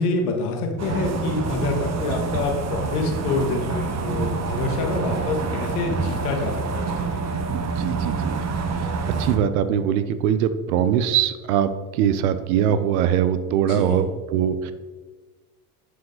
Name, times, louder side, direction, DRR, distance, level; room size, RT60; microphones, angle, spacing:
voice 1, 0.0-7.4 13.7-14.1, left 3 dB, 75° left, 3 dB, 1.7 m, -27 dB
sound 1, 0.8-9.4, right 4 dB, 35° right, 1.1 m, -27 dB
voice 2, 7.5-8.3 9.2-14.7, right 9 dB, 70° right, 12 dB, 0.8 m, -22 dB
10.5 x 5.0 x 4.0 m, 1.3 s
hypercardioid pair, 70°, 45 cm